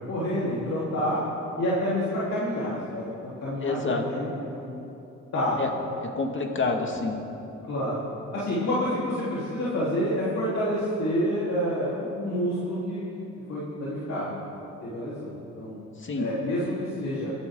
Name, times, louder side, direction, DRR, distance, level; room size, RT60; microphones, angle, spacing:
voice 1, 0.1-1.2 1.6-4.7 5.3-5.6 7.7-8.0 8.3-14.4 14.8-15.8 16.2-17.3, equal, 60° left, -9 dB, 4.0 m, -28 dB
voice 2, 3.6-4.0 5.6-5.7 6.0-7.2 16.0-16.3, left 3 dB, 40° left, 2 dB, 2.1 m, -28 dB
23.5 x 12.0 x 3.9 m, 2.9 s
cardioid pair, 90°, 30 cm